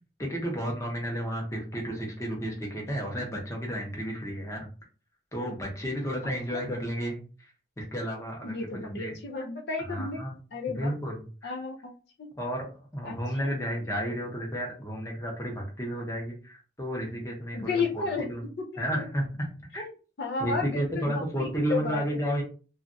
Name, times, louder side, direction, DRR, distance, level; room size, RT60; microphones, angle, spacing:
voice 1, 0.2-4.7 5.3-7.5 7.8-9.1 9.8-10.4 10.7-11.5 12.4-12.7 12.9-18.4 18.8-19.9 20.4-22.4, equal, 15° left, -1 dB, 0.8 m, -32 dB
voice 2, 8.4-10.2 10.5-10.9 11.4-11.9 12.2-12.3 13.0-13.2 17.5-18.3 18.7-19.0 20.2-22.0, left 4 dB, 65° left, 2 dB, 0.5 m, -32 dB
3.1 x 2.4 x 2.5 m, 0.36 s
head